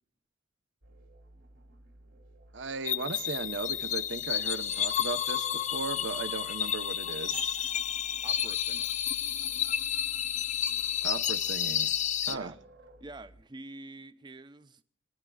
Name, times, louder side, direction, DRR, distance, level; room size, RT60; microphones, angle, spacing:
sound 1, 0.8-13.4, right 1 dB, 90° right, 3.5 m, -56 dB
voice 1, 2.5-7.7 11.0-12.0 12.3-12.5, right 4 dB, 65° right, 10 dB, 0.9 m, -37 dB
sound 2, 2.8-12.4, left 10 dB, 40° left, 0.4 m, -31 dB
voice 2, 8.2-8.9 12.3-12.6 13.0-14.8, right 2 dB, 25° right, 12 dB, 0.6 m, -46 dB
29.0 x 10.5 x 2.4 m, 0.62 s
head